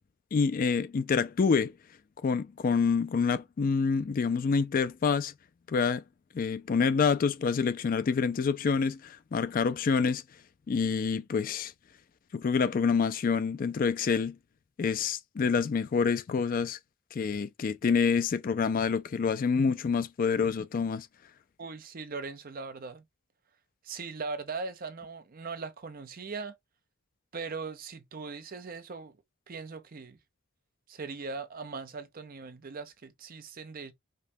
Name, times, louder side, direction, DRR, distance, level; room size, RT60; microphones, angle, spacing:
voice 1, 0.3-1.7 2.2-5.3 5.7-6.0 6.3-10.2 10.7-11.7 12.3-14.4 14.8-16.8 17.1-21.1, left 5 dB, 40° left, 0.3 m, -27 dB
voice 2, 21.6-23.0 23.8-26.5 27.3-29.2 29.5-30.2 30.9-33.9, right 4 dB, 40° right, 0.6 m, -39 dB
5.1 x 2.2 x 2.6 m
head